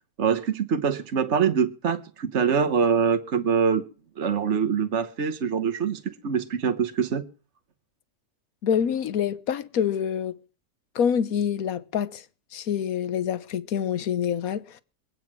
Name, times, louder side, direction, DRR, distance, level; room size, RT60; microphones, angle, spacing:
voice 1, 0.2-3.8 4.2-7.2, right 6 dB, 50° right, 1.3 m, -24 dB
voice 2, 8.6-10.4 10.9-12.2 12.5-14.8, left 8 dB, 70° left, 1.4 m, -26 dB
23.0 x 9.3 x 6.0 m
omnidirectional pair, 1.6 m